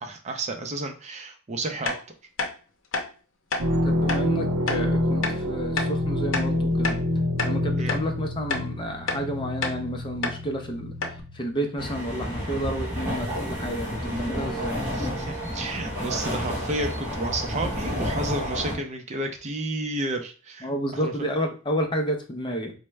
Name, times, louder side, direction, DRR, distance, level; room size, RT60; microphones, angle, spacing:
voice 1, 0.0-1.9 7.8-7.9 14.9-21.1, right 2 dB, 30° right, 4 dB, 0.5 m, -31 dB
sound 1, 1.9-2.0 2.4-2.5 2.9-3.1 3.5-3.7 4.1-4.2 4.7-4.8 5.2-5.4 5.8-5.9 6.3-7.1 7.4-7.6 7.9-8.0 8.5-8.7 9.1-9.2 9.6-9.8 10.2-10.4 10.7-10.8 11.0-11.2, left 4 dB, 60° left, 0.7 m, -28 dB
sound 2, 3.6-11.6 12.2-12.6, left 1 dB, 75° right, 0.7 m, -27 dB
voice 2, 3.8-7.0 7.4-14.8 18.7-18.8 20.6-22.7, equal, 20° left, 4 dB, 0.5 m, -30 dB
sound 3, 11.8-18.7, equal, 10° right, 1.2 m, -30 dB
4.4 x 2.1 x 3.1 m, 0.36 s
head